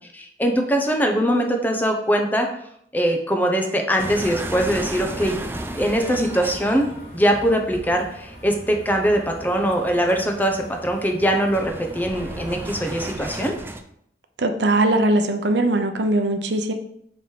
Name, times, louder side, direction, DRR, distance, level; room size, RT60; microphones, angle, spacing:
voice 1, 0.1-2.5 2.9-5.4 5.8-13.6, equal, 10° left, 3 dB, 0.7 m, -22 dB
sound 1, 4.0-13.8, right 1 dB, 15° right, 0.4 m, -35 dB
sound 2, 5.9-13.5, left 1 dB, 70° left, 2.8 m, -43 dB
voice 2, 14.4-16.7, right 2 dB, 80° right, 6 dB, 0.7 m, -20 dB
5.0 x 4.5 x 4.8 m, 0.71 s
head